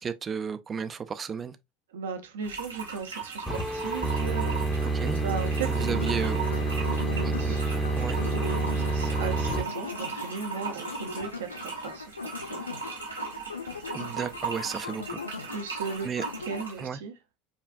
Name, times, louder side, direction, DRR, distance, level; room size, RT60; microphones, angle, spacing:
voice 1, 0.0-1.6 4.9-5.2 5.7-6.4 7.2-7.6 8.0-8.2 13.9-15.2 16.0-16.2 16.8-17.0, right 6 dB, 30° right, 0.4 m, -33 dB
voice 2, 1.9-4.9 5.2-12.6 15.5-16.1 16.5-17.1, right 6 dB, 70° right, 0.6 m, -37 dB
sound 1, 2.4-16.8, right 5 dB, 90° right, 1.0 m, -38 dB
sound 2, 3.5-9.6, right 3 dB, 15° left, 0.8 m, -28 dB
sound 3, 6.0-16.6, left 4 dB, 85° left, 0.5 m, -40 dB
5.1 x 2.4 x 2.3 m
figure-of-eight pair, 75°, 0 cm